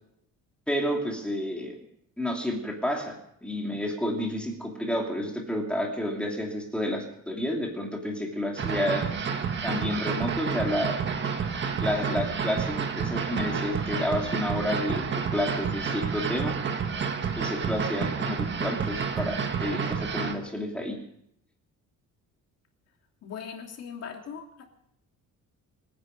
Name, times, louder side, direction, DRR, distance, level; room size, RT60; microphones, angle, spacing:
voice 1, 0.7-1.8 2.2-3.1 3.4-9.1 9.6-11.0 11.8-16.5 17.4-21.0, left 1 dB, 5° left, 0 dB, 2.8 m, -30 dB
sound 1, 8.6-20.4, right 6 dB, 35° right, 1.6 m, -30 dB
voice 2, 23.2-24.6, left 7 dB, 50° left, 2 dB, 2.9 m, -39 dB
25.5 x 10.5 x 5.3 m, 0.72 s
cardioid pair, 170°, 32 cm